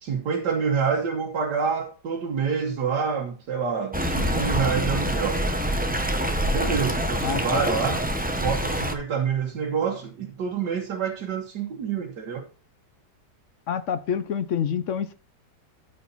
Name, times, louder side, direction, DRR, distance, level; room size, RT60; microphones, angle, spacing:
voice 1, 0.0-5.4 6.5-8.0 8.4-12.5, right 6 dB, 80° right, 1.8 m, -27 dB
Stream, 3.9-8.9, equal, 5° right, 0.7 m, -26 dB
voice 2, 7.2-7.6 13.7-15.1, left 8 dB, 65° left, 0.8 m, -27 dB
13.5 x 5.3 x 4.1 m
omnidirectional pair, 1.8 m